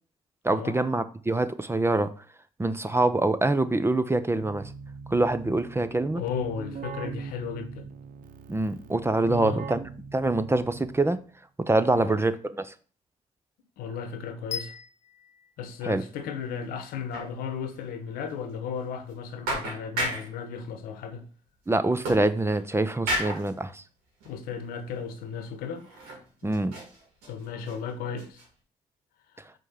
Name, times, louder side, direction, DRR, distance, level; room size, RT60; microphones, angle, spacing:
voice 1, 0.4-2.1 2.6-4.7 5.1-6.2 8.5-9.8 10.1-11.2 11.6-12.7 15.8-16.0 21.7-23.8 26.4-26.7, right 2 dB, 15° right, 0.7 m, -25 dB
Keyboard (musical), 4.4-11.3, right 5 dB, 70° right, 0.6 m, -41 dB
voice 2, 5.8-7.9 9.3-9.7 11.9-12.2 13.8-14.7 15.6-21.3 24.2-25.9 27.3-28.4, left 6 dB, 80° left, 1.0 m, -35 dB
sound 1, 14.5-16.6, left 6 dB, 50° left, 0.7 m, -39 dB
sound 2, 15.8-16.2 16.5-16.6 17.1-17.3 17.7-17.8 18.3-18.4 19.1-19.2 19.4-20.4 22.0-22.7 23.1-23.5 24.2-24.3 24.9-25.0 25.7-26.3 26.5-27.8 28.2-28.5, right 1 dB, 90° right, 2.1 m, -33 dB
5.3 x 3.7 x 5.6 m
supercardioid pair, 55°, 15 cm